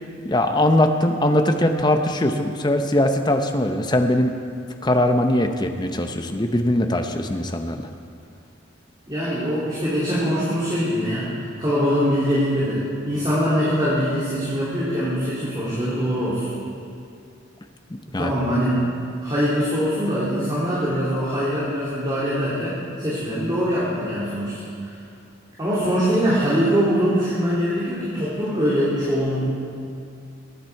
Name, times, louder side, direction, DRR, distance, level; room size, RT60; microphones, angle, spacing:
voice 1, 0.2-4.3 4.8-7.8 17.9-18.3, left 1 dB, 20° left, 5 dB, 0.7 m, -21 dB
voice 2, 9.1-16.5 18.2-18.8 19.2-24.6 25.6-29.5, equal, 20° right, -10 dB, 2.6 m, -23 dB
21.5 x 9.3 x 4.6 m, 2.4 s
head